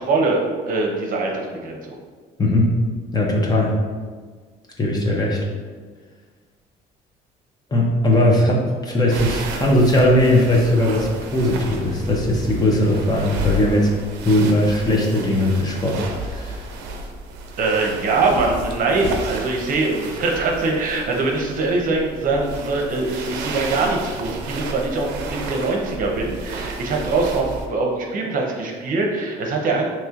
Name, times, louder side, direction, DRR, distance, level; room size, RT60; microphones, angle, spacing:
voice 1, 0.0-1.8 17.6-29.9, right 3 dB, 55° right, 0 dB, 0.7 m, -22 dB
voice 2, 2.4-2.8 3.1-3.7 4.8-5.4 7.7-13.9 14.2-16.6 23.8-23.9, left 1 dB, 25° left, -2 dB, 0.7 m, -19 dB
sound 1, 9.1-27.7, right 2 dB, 85° right, 0.5 m, -32 dB
4.3 x 3.0 x 2.4 m, 1.5 s
cardioid pair, 110°, 17 cm